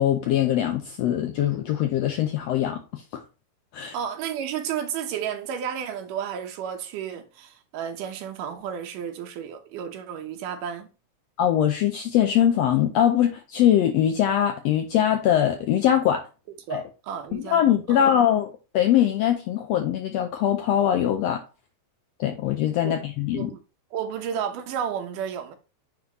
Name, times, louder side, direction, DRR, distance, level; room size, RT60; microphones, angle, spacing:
voice 1, 0.0-3.2 3.7-3.9 11.4-16.3 16.7-16.8 17.3-21.4 22.2-23.5, left 10 dB, 80° left, 1.5 m, -22 dB
voice 2, 3.9-10.9 16.7-17.6 17.9-18.1 22.9-23.0 23.3-23.6 23.9-25.6, right 8 dB, 85° right, 2.6 m, -32 dB
9.6 x 3.6 x 3.0 m
omnidirectional pair, 3.6 m